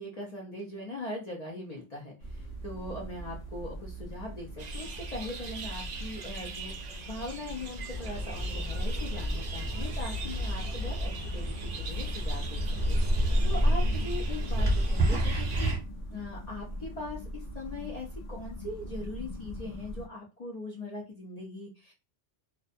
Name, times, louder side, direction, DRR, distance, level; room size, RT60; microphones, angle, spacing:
voice 1, 0.0-12.6 12.9-15.7 16.1-21.9, left 2 dB, 60° left, -2 dB, 0.4 m, -41 dB
sound 1, 2.2-20.1, equal, 85° left, 1.0 m, -42 dB
sound 2, 4.6-15.7, right 5 dB, 60° right, 0.4 m, -43 dB
sound 3, 7.9-15.8, equal, 10° right, 1.0 m, -29 dB
2.5 x 2.1 x 2.5 m, 0.30 s
omnidirectional pair, 1.2 m